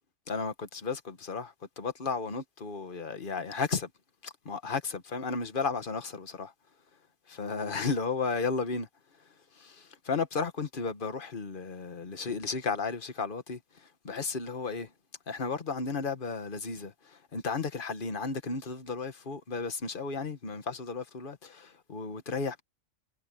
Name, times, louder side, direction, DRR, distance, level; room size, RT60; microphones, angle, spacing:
voice 1, 0.3-3.9 4.2-6.5 7.3-8.9 9.6-13.6 14.0-14.9 15.3-22.6, left 4 dB, 45° left, 1.6 m, -34 dB
omnidirectional pair, 1.3 m